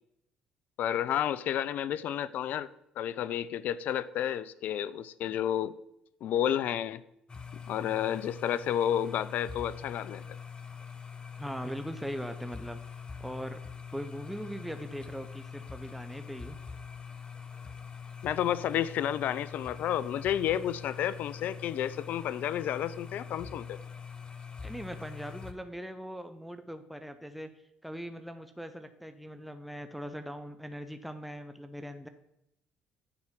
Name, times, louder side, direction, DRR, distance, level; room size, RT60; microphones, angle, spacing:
voice 1, 0.8-2.7 3.0-5.7 6.2-7.0 7.7-10.4 18.2-23.8, left 10 dB, 65° left, 17 dB, 0.4 m, -31 dB
sound 1, 7.3-25.5, left 6 dB, 30° left, 0.9 m, -44 dB
voice 2, 11.4-12.8 13.2-13.6 13.9-16.6 24.6-27.5 27.8-32.1, equal, ahead, 8 dB, 0.7 m, -40 dB
9.8 x 4.4 x 5.8 m, 0.79 s
hypercardioid pair, 60°, 3 cm